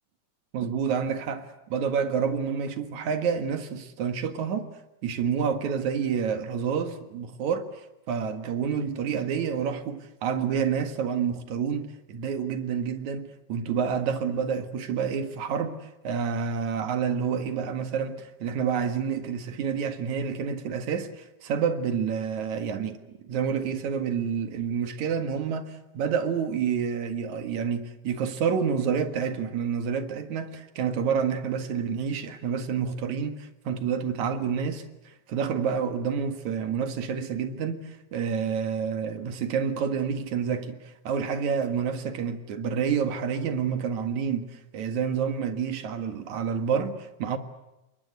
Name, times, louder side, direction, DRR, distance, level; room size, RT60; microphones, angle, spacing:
voice 1, 0.5-4.7 5.0-7.8 8.1-23.0 23.2-47.4, right 7 dB, 70° right, 3.1 m, -28 dB
28.5 x 23.0 x 8.1 m
omnidirectional pair, 3.6 m